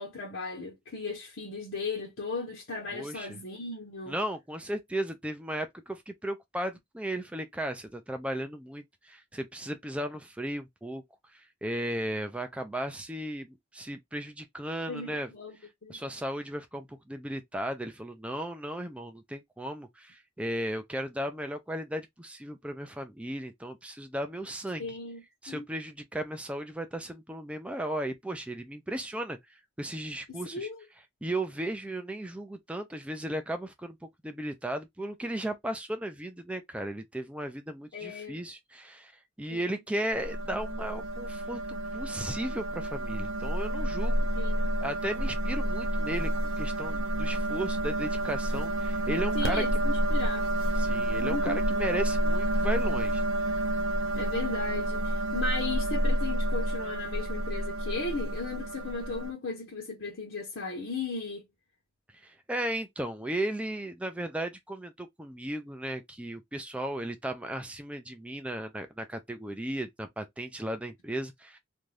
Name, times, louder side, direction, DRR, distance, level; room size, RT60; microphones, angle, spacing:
voice 1, 0.0-4.2 14.9-15.6 15.8-16.0 24.8-25.2 25.5-25.7 30.3-30.9 37.9-38.4 39.5-39.8 44.3-44.7 49.3-50.5 51.2-51.6 54.2-61.4, left 3 dB, 70° left, 0.9 m, -36 dB
voice 2, 2.9-3.4 4.1-11.0 11.3-15.3 15.9-25.0 25.4-30.7 31.2-34.0 34.2-39.1 39.4-44.3 44.8-49.9 50.8-53.2 62.1-71.6, right 1 dB, 5° right, 0.4 m, -35 dB
sound 1, 40.1-59.3, right 1 dB, 85° right, 0.7 m, -29 dB
2.6 x 2.3 x 3.2 m
head